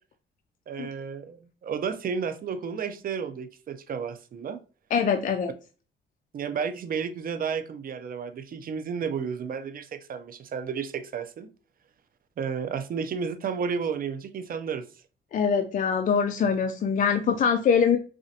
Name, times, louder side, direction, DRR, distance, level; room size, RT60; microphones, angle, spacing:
voice 1, 0.7-4.6 6.3-11.5 12.4-14.9, right 6 dB, 45° right, 0.5 m, -32 dB
voice 2, 4.9-5.5 15.3-18.0, left 6 dB, 40° left, 0.4 m, -23 dB
4.1 x 2.4 x 2.7 m
cardioid pair, 90°, 20 cm